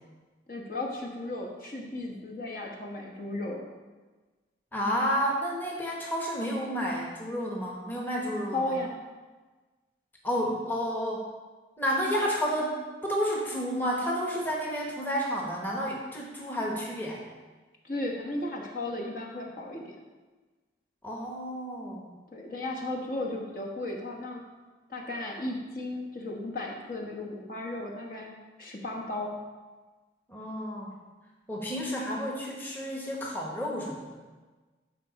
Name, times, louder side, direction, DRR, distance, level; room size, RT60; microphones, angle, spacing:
voice 1, 0.5-3.6 8.5-8.9 17.8-20.0 22.3-24.4 24.9-29.3, left 2 dB, 50° left, -1 dB, 1.3 m, -35 dB
voice 2, 4.7-8.7 10.2-11.2 11.8-17.2 21.0-22.1 30.3-30.9 31.5-34.0, equal, 10° left, -3 dB, 1.1 m, -31 dB
13.0 x 4.7 x 4.1 m, 1.3 s
head